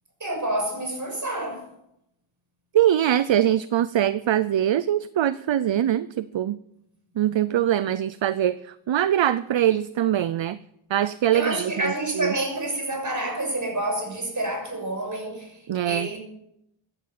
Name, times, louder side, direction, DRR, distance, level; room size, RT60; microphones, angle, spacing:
voice 1, 0.2-1.7 11.3-16.2, right 1 dB, 35° right, 2 dB, 6.2 m, -28 dB
voice 2, 2.7-6.6 7.2-10.6 10.9-12.3 15.7-16.1, right 11 dB, 65° right, 16 dB, 0.6 m, -23 dB
15.0 x 11.0 x 7.6 m, 0.80 s
wide cardioid pair, 115°, 49 cm